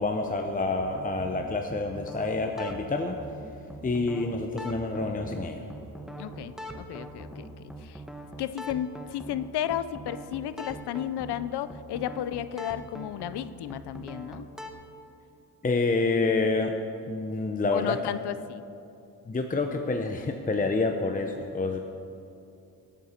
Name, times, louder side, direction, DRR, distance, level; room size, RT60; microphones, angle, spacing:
voice 1, 0.0-3.2 3.8-5.6 15.6-16.7 17.1-18.0 19.3-21.8, left 3 dB, 20° left, 4 dB, 0.7 m, -28 dB
sound 1, 0.8-14.7, right 1 dB, ahead, 1.1 m, -42 dB
voice 2, 6.2-7.5 7.8-8.0 8.4-14.5 17.7-18.6, left 11 dB, 85° left, 14 dB, 0.6 m, -33 dB
17.5 x 9.1 x 4.4 m, 2.8 s
cardioid pair, 90°, 39 cm